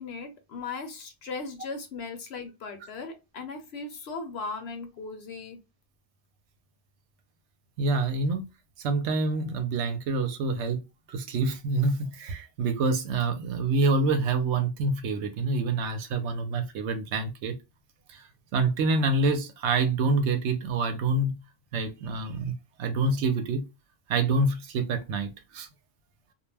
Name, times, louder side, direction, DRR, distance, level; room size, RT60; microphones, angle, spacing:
voice 1, 0.0-5.6, left 4 dB, 65° left, 0.8 m, -38 dB
voice 2, 7.8-8.5 8.8-10.8 11.1-17.5 18.1-21.3 21.7-22.5 22.8-23.6 24.1-25.7, right 3 dB, 70° right, 0.8 m, -27 dB
2.3 x 2.1 x 3.2 m
omnidirectional pair, 1.3 m